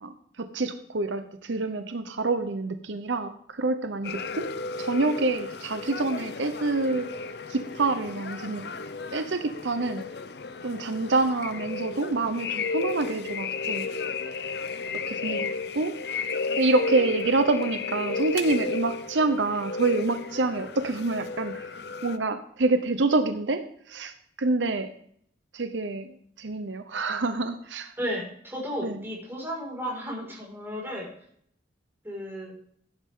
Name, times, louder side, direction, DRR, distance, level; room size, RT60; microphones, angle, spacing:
voice 1, 0.0-4.4 4.8-7.1 7.5-8.6 9.1-10.0 10.6-13.9 15.1-15.9 16.6-21.7 22.0-24.1 24.4-24.9 25.5-27.9 28.8-29.0, right 3 dB, 85° right, 8 dB, 0.9 m, -27 dB
sound 1, 4.0-22.2, left 4 dB, 60° left, 0.6 m, -33 dB
voice 2, 28.0-31.1 32.0-32.5, equal, 10° right, -3 dB, 5.3 m, -33 dB
15.5 x 9.7 x 3.8 m, 0.65 s
head